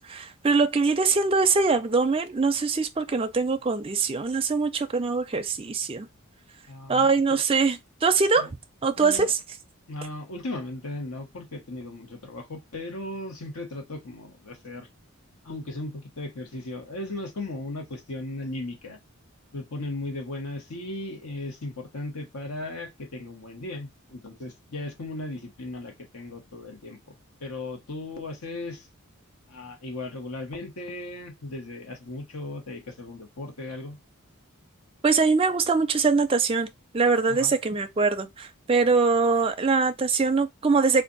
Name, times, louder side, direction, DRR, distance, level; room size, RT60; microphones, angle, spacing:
voice 1, 0.0-6.1 6.9-8.5 8.8-9.4 35.0-41.0, right 4 dB, 25° right, 0.5 m, -23 dB
voice 2, 6.7-7.4 8.4-8.5 9.0-9.3 9.9-14.9 15.4-19.0 19.5-27.1 27.4-28.9 29.5-34.0 37.3-37.5, left 2 dB, 90° left, 1.2 m, -37 dB
3.5 x 2.5 x 3.9 m
head